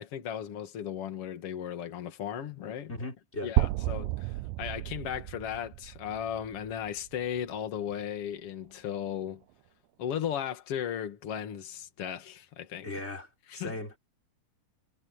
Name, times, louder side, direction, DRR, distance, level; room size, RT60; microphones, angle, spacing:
voice 1, 0.0-2.9 3.4-9.4 10.0-12.9 13.5-13.7, left 9 dB, 40° left, 2.6 m, -36 dB
voice 2, 2.9-3.5 12.8-14.0, left 1 dB, 15° left, 4.3 m, -38 dB
sound 1, 3.6-7.5, right 18 dB, 85° right, 2.0 m, -32 dB
omnidirectional pair, 4.5 m